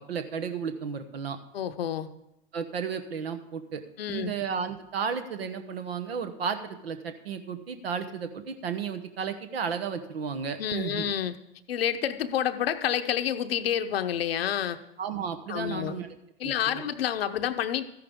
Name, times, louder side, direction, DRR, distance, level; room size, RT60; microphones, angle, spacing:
voice 1, 0.1-1.4 2.5-3.8 4.1-11.1 15.0-16.1 16.4-16.9, right 6 dB, 85° right, 8 dB, 1.1 m, -33 dB
voice 2, 1.5-2.1 4.0-4.3 10.6-11.4 11.7-14.8 15.5-15.9 16.4-17.8, left 10 dB, 85° left, 9 dB, 0.8 m, -29 dB
13.5 x 11.0 x 3.6 m, 0.86 s
hypercardioid pair, 100°, 29 cm